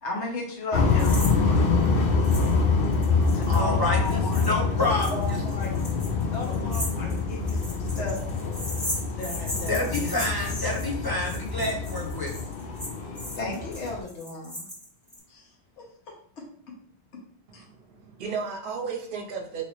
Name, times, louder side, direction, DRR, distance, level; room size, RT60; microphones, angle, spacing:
voice 1, 0.0-1.8 3.3-4.4 4.8-5.7 6.3-8.2 9.1-10.4 13.4-14.6 15.3-15.4 15.8-16.8 17.1-17.2 17.5-17.6, left 2 dB, 75° left, -1 dB, 1.2 m, -35 dB
sound 1, 0.7-14.0, left 4 dB, 60° left, 0.7 m, -26 dB
sound 2, 1.0-1.3 1.6-1.7 2.2-2.5 2.8-15.2, left 1 dB, 5° left, 1.4 m, -37 dB
voice 2, 3.5-4.2 4.5-5.1 9.7-12.3, left 2 dB, 30° left, -2 dB, 0.5 m, -28 dB
voice 3, 17.5-19.6, right 5 dB, 55° right, 1 dB, 0.8 m, -34 dB
2.9 x 2.8 x 2.9 m, 0.63 s
omnidirectional pair, 1.2 m